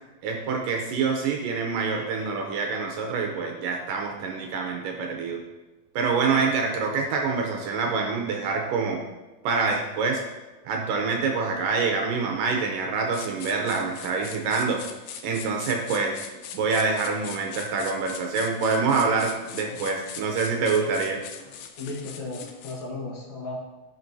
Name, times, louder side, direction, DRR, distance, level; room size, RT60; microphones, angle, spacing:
voice 1, 0.2-5.4 6.0-9.0 9.4-10.2 10.7-14.9 15.2-16.2 16.5-21.2, right 4 dB, 75° right, 2 dB, 2.1 m, -26 dB
sound 1, 13.1-22.9, left 8 dB, 85° left, 2.6 m, -41 dB
voice 2, 21.8-23.6, left 2 dB, 60° left, -3 dB, 2.1 m, -35 dB
14.0 x 5.8 x 2.7 m, 1.1 s
omnidirectional pair, 4.3 m